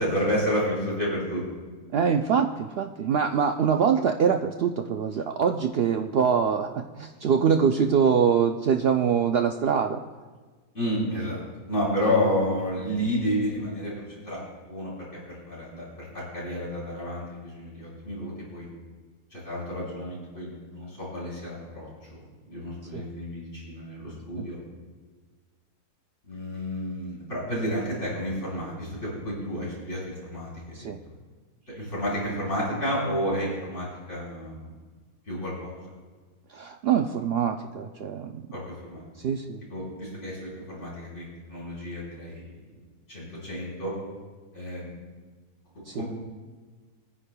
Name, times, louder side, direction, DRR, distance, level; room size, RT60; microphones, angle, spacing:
voice 1, 0.0-1.4 10.7-18.7 19.3-21.9 22.5-24.6 26.3-30.9 31.7-34.7 35.3-35.8 38.5-39.0 39.7-42.4 43.1-43.9 44.5-44.9 45.9-46.0, equal, 50° left, -7 dB, 4.7 m, -31 dB
voice 2, 1.9-10.0 22.9-23.1 24.4-24.5 30.7-31.0 36.5-38.4 39.2-39.6 45.9-46.0, right 7 dB, 80° right, 5 dB, 0.5 m, -24 dB
22.5 x 10.0 x 2.2 m, 1.4 s
omnidirectional pair, 1.6 m